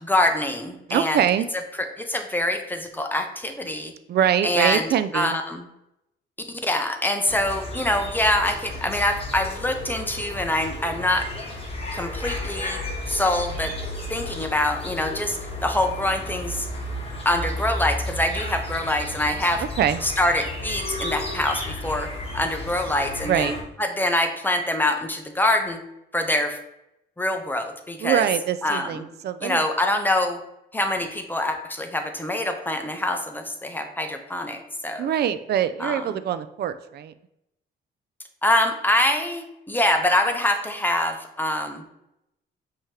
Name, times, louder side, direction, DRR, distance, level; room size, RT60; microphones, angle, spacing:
voice 1, 0.0-1.3 1.8-3.9 4.4-4.9 5.1-5.6 6.6-11.3 11.9-12.8 13.1-13.7 14.1-16.7 17.2-19.6 20.0-25.8 26.1-26.6 27.2-28.2 28.6-29.0 29.4-30.4 30.7-35.1 35.8-36.1 38.4-41.8, left 1 dB, 10° left, 5 dB, 0.7 m, -25 dB
voice 2, 0.9-1.5 4.1-5.4 19.6-20.0 23.2-23.6 28.0-29.6 35.0-37.1, right 10 dB, 55° right, 13 dB, 0.4 m, -24 dB
sound 1, 7.2-23.6, left 1 dB, 30° left, 1.3 m, -33 dB
5.6 x 2.9 x 3.2 m, 0.85 s
cardioid pair, 90°, 20 cm